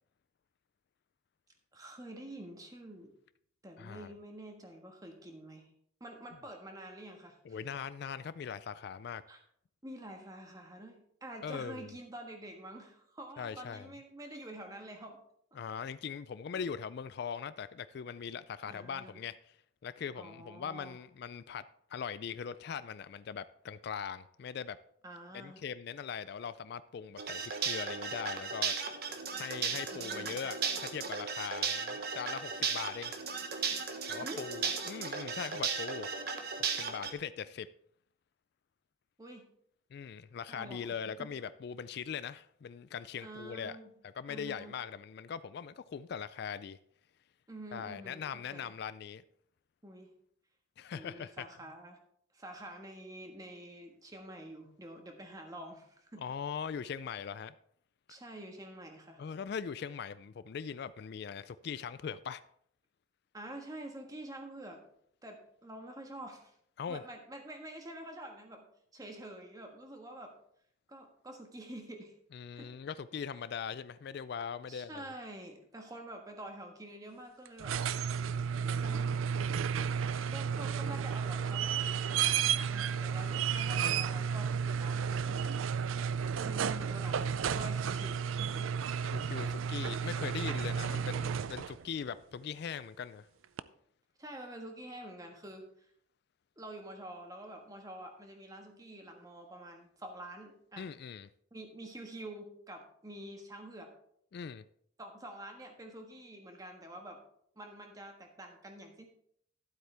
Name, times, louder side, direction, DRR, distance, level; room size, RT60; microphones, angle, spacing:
voice 1, 1.7-3.1 3.6-5.7 6.0-7.6 9.3-9.4 9.8-15.2 18.6-19.2 20.2-21.0 25.0-25.6 29.9-30.3 30.6-30.7 34.2-34.5 39.2-39.4 40.5-40.9 41.2-41.3 43.2-43.9 44.3-44.8 47.5-48.7 49.8-50.1 50.9-52.0 52.3-56.3 58.1-59.2 63.3-64.8 65.2-66.5 66.9-68.6 68.9-70.3 70.9-72.1 72.5-72.7 73.3-73.4 74.7-77.8 78.8-79.2 80.3-85.6 86.4-88.6 94.2-95.7 96.6-100.9 101.5-103.9 105.0-107.2 107.6-109.0, right 1 dB, 20° right, 1.4 m, -47 dB
voice 2, 3.8-4.1 7.4-9.2 11.4-11.9 13.4-13.9 15.6-19.6 19.8-21.7 21.9-24.8 25.3-28.7 29.3-33.1 34.1-36.1 36.6-37.7 39.9-43.8 44.2-46.8 47.7-49.2 50.8-51.3 56.2-57.5 59.2-62.4 66.8-67.0 72.3-75.1 89.0-93.3 100.8-101.3 104.3-104.6, left 7 dB, 55° left, 0.3 m, -41 dB
sound 1, 27.2-37.1, right 5 dB, 50° right, 1.1 m, -36 dB
sound 2, 77.5-91.8 93.6-93.7, right 7 dB, 85° right, 0.4 m, -32 dB
12.0 x 8.0 x 3.4 m
head